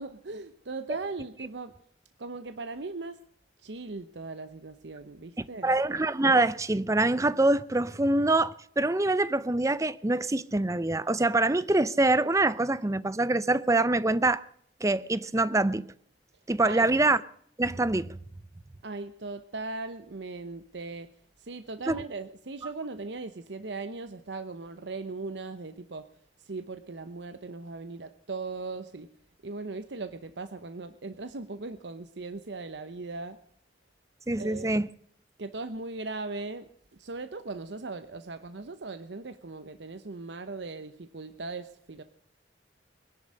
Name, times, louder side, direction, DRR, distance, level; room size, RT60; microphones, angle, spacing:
voice 1, 0.0-1.7 2.2-3.2 3.6-5.7 16.6-16.9 18.8-21.1 21.4-26.0 26.4-29.1 29.4-33.4 34.4-34.7 35.4-36.7 37.0-42.0, right 3 dB, 85° right, 0.9 m, -38 dB
voice 2, 5.4-14.4 14.8-15.8 16.5-17.2 17.6-18.1 21.9-22.0 34.3-34.9, right 2 dB, 20° right, 0.6 m, -25 dB
21.0 x 11.0 x 6.4 m
head